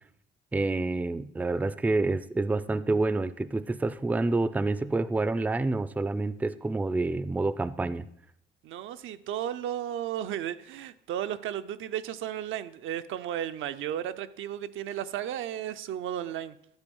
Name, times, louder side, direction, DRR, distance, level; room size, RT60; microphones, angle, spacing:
voice 1, 0.5-8.1, right 2 dB, 10° right, 15 dB, 0.3 m, -28 dB
voice 2, 8.6-16.6, right 10 dB, 80° right, 11 dB, 0.5 m, -34 dB
11.5 x 4.3 x 5.4 m, 0.72 s
cardioid pair, 90°, 20 cm